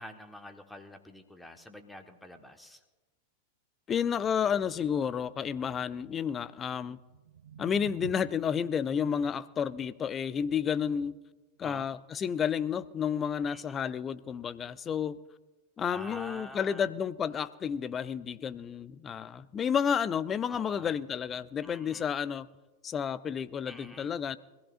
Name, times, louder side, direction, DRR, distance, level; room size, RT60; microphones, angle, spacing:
voice 1, 0.0-2.8 11.6-11.9 13.5-13.6 15.9-16.9 20.5-20.9 21.6-22.1 23.7-24.1, left 1 dB, 5° left, 1.3 m, -47 dB
voice 2, 3.9-7.0 7.6-11.2 11.6-15.2 15.8-22.5 22.8-24.4, left 7 dB, 25° left, 0.5 m, -31 dB
sound 1, 6.9-13.0, right 9 dB, 60° right, 0.7 m, -51 dB
24.0 x 15.5 x 2.5 m
figure-of-eight pair, 90°, 0 cm